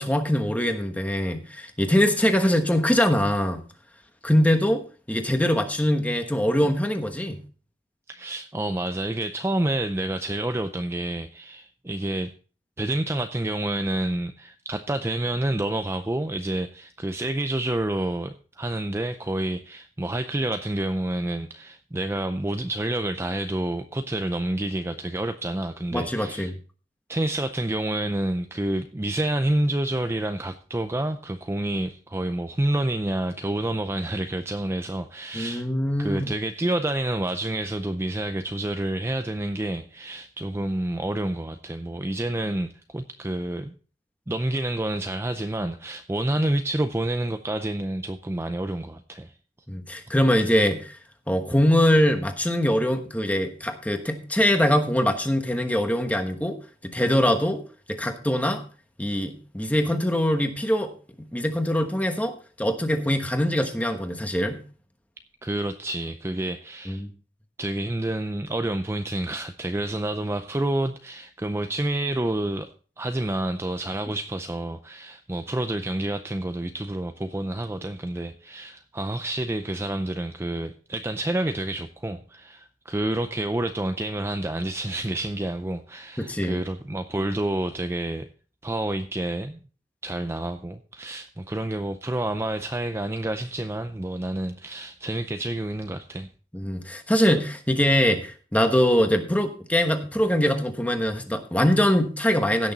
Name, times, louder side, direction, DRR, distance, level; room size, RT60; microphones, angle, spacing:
voice 1, 0.0-3.6 4.2-4.8 5.1-7.4 25.9-26.5 35.3-36.3 49.7-51.0 51.3-56.6 56.8-57.6 57.9-58.6 59.0-60.9 61.2-64.6 66.9-67.1 86.2-86.6 96.5-102.7, equal, 10° left, 1.2 m, -23 dB
voice 2, 8.1-12.3 12.8-26.5 27.1-35.7 36.0-43.7 44.3-49.3 65.4-67.0 67.6-88.3 88.6-89.6 90.0-96.3, right 1 dB, 15° right, 0.5 m, -28 dB
16.5 x 6.4 x 4.0 m
head